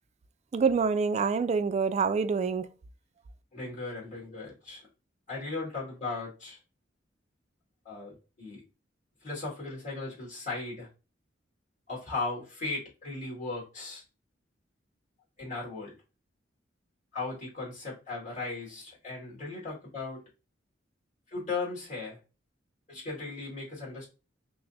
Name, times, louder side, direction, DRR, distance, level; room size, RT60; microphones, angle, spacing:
voice 1, 0.5-2.7, right 5 dB, 35° right, 0.3 m, -26 dB
voice 2, 3.5-4.8 5.3-6.6 7.8-8.6 9.2-10.9 11.9-14.0 15.4-15.9 17.1-20.2 21.3-22.2 22.9-24.1, left 3 dB, 40° left, 2.0 m, -37 dB
5.7 x 2.0 x 2.6 m
head